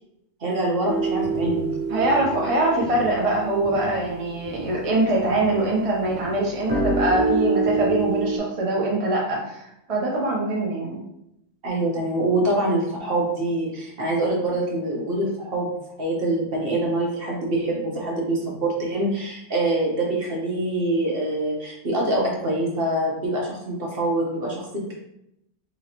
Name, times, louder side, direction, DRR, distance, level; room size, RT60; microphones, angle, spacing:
voice 1, 0.4-1.7 11.6-15.7 16.0-24.9, right 1 dB, 55° right, -2 dB, 1.1 m, -25 dB
sound 1, 0.9-5.7 6.0-8.4, right 3 dB, 90° right, 1.2 m, -27 dB
voice 2, 1.9-11.0, right 2 dB, 35° right, -3 dB, 0.7 m, -23 dB
3.9 x 3.0 x 2.9 m, 0.81 s
omnidirectional pair, 1.2 m